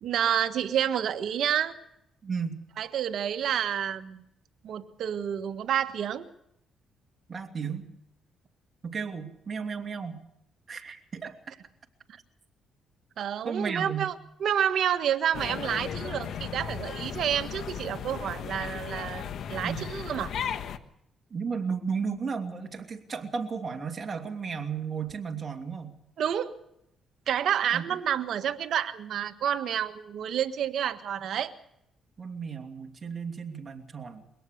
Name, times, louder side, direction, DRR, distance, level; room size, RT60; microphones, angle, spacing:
voice 1, 0.0-1.8 2.8-4.2 4.6-6.3 13.2-14.1 14.4-20.3 26.2-26.6 27.3-31.5, right 9 dB, 70° right, 9 dB, 1.5 m, -29 dB
voice 2, 2.2-2.6 7.3-7.8 8.8-10.2 10.7-11.4 13.4-14.1 19.6-19.9 21.3-25.9 27.7-27.8 32.2-34.3, right 5 dB, 40° right, 4 dB, 2.7 m, -34 dB
sound 1, 15.3-20.8, left 8 dB, 65° left, 1.3 m, -36 dB
23.5 x 17.5 x 6.6 m, 0.79 s
cardioid pair, 90°, 0 cm